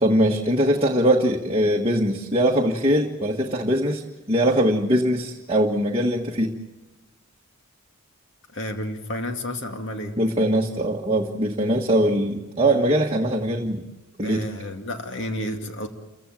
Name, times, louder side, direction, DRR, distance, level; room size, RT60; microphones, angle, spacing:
voice 1, 0.0-6.5 10.2-13.9 14.2-14.5, right 1 dB, 25° right, 0 dB, 1.4 m, -21 dB
voice 2, 8.5-10.1 14.2-15.9, left 1 dB, 55° left, 4 dB, 2.4 m, -31 dB
28.5 x 16.0 x 8.9 m, 1.1 s
head